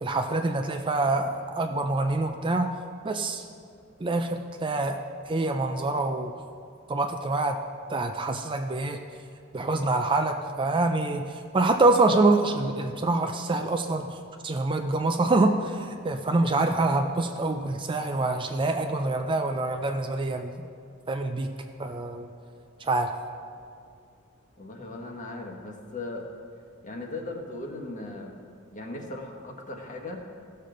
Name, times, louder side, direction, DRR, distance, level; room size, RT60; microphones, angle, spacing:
voice 1, 0.0-2.7 3.0-3.5 4.0-5.0 5.3-6.3 6.9-7.6 7.9-9.0 9.5-11.3 11.5-14.2 14.4-20.7 21.1-21.5 21.8-22.3 22.8-23.1, right 2 dB, 25° right, 5 dB, 0.4 m, -25 dB
voice 2, 24.6-26.3 26.8-28.4 28.7-30.2, left 2 dB, 40° left, 2 dB, 1.2 m, -38 dB
16.0 x 6.8 x 3.8 m, 2.3 s
head